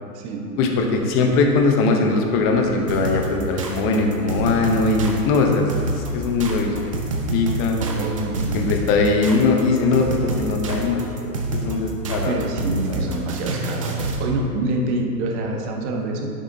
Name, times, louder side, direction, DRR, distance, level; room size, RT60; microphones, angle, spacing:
voice 1, 0.6-5.7 6.1-6.9 7.3-7.8 8.5-12.4, left 3 dB, 25° left, 2 dB, 0.9 m, -20 dB
sound 1, 2.9-14.3, right 2 dB, 25° right, 0.3 m, -27 dB
voice 2, 7.8-8.7 12.2-16.3, right 2 dB, 40° right, 1 dB, 1.3 m, -26 dB
9.5 x 7.6 x 2.7 m, 2.4 s
hypercardioid pair, 130°, 49 cm